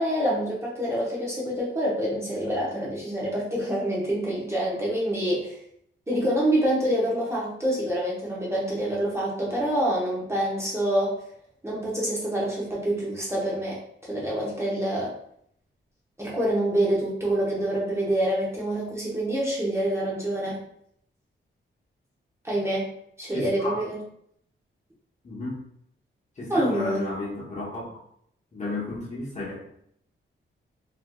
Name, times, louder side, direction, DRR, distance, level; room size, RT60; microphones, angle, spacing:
voice 1, 0.0-5.6 6.1-11.1 11.6-15.1 16.2-20.6 22.4-22.9 23.2-24.0 26.5-27.0, right 1 dB, 15° right, -6 dB, 0.8 m, -26 dB
voice 2, 23.3-23.8 25.2-25.6 26.4-27.9 28.5-29.7, left 2 dB, 35° left, -5 dB, 1.0 m, -33 dB
3.3 x 2.7 x 2.3 m, 0.69 s
wide cardioid pair, 155°, 21 cm